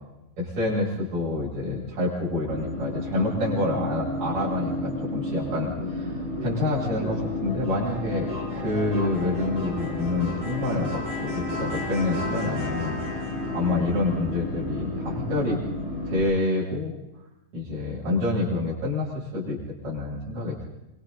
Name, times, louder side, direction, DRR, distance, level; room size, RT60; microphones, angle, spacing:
voice 1, 0.4-15.6 16.0-16.9 17.5-20.7, left 2 dB, 50° right, -7 dB, 9.2 m, -28 dB
sound 1, 2.5-16.2, left 2 dB, 20° right, 6.4 m, -31 dB
29.5 x 26.5 x 4.1 m, 0.94 s
omnidirectional pair, 4.2 m